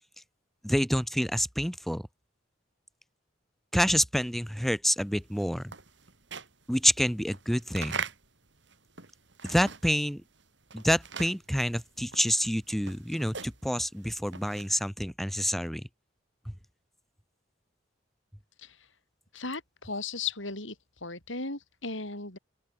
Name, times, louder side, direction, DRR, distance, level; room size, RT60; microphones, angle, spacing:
voice 1, 0.6-2.1 3.7-5.7 6.7-8.0 9.4-10.2 10.7-15.9 16.5-16.6, equal, ahead, 7.5 m, -28 dB
sound 1, 5.1-10.1 10.4-14.9, right 6 dB, 60° right, 4.7 m, -42 dB
voice 2, 19.3-22.4, left 4 dB, 75° left, 7.2 m, -36 dB
open air
head